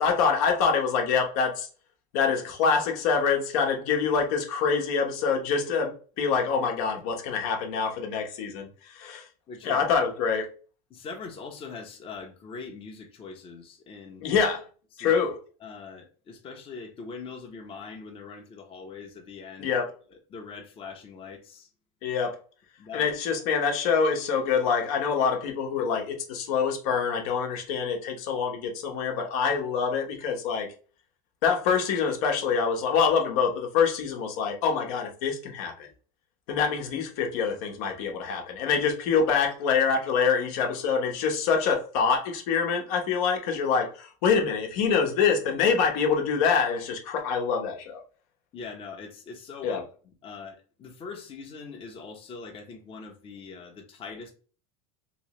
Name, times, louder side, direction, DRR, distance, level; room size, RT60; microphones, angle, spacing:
voice 1, 0.0-1.7 2.1-9.3 9.6-10.5 14.2-14.6 15.0-15.4 19.6-19.9 22.0-22.4 22.9-30.7 31.4-35.9 36.5-48.0 49.6-49.8, left 6 dB, 70° left, 1.0 m, -25 dB
voice 2, 9.5-9.8 10.9-14.3 14.9-15.2 15.6-19.7 20.1-21.7 22.8-23.1 48.5-49.8 50.2-54.3, left 4 dB, 30° left, 0.8 m, -42 dB
3.1 x 3.0 x 3.0 m
supercardioid pair, 120°, 18 cm